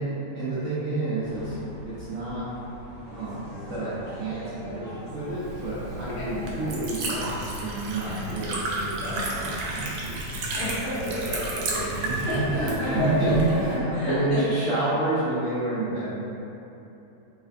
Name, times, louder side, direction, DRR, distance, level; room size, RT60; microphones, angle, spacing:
voice 1, 0.0-1.6 1.8-2.5 3.1-3.4 3.7-10.3 11.8-16.1, right 2 dB, 70° right, -10 dB, 0.7 m, -29 dB
sound 1, 1.2-13.4, left 2 dB, 35° left, 1.1 m, -45 dB
sound 2, 3.0-7.2, equal, 30° right, 0.5 m, -43 dB
Liquid, 5.2-13.8, right 2 dB, 85° right, 1.4 m, -33 dB
voice 2, 6.0-6.5 8.1-8.4 9.1-9.4 10.5-11.9 12.2-14.4, left 1 dB, 65° left, -10 dB, 0.5 m, -30 dB
3.3 x 2.4 x 3.3 m, 3.0 s
omnidirectional pair, 2.1 m